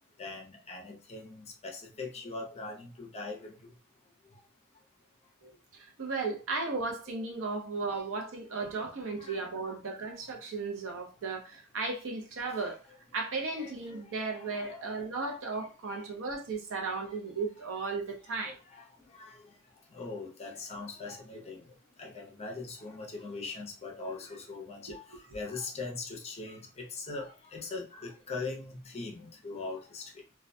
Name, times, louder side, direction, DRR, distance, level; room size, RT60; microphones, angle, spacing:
voice 1, 0.2-3.7 4.2-4.4 5.4-5.5 7.1-7.2 8.5-8.7 9.2-9.5 10.6-10.7 13.5-13.7 14.3-16.1 16.9-17.2 18.2-30.3, left 3 dB, 30° left, 0.5 m, -42 dB
voice 2, 5.4-12.8 13.1-18.6, right 3 dB, 60° right, 0.6 m, -35 dB
2.2 x 2.1 x 2.6 m
head